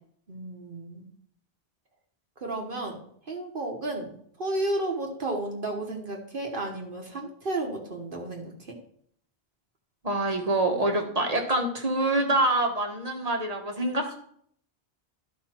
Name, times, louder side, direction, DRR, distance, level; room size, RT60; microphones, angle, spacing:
voice 1, 0.3-1.1 2.4-8.7, right 2 dB, 55° right, 1 dB, 1.4 m, -33 dB
voice 2, 10.0-14.1, right 1 dB, 40° right, 3 dB, 1.3 m, -26 dB
11.5 x 5.4 x 4.4 m, 0.64 s
omnidirectional pair, 1.1 m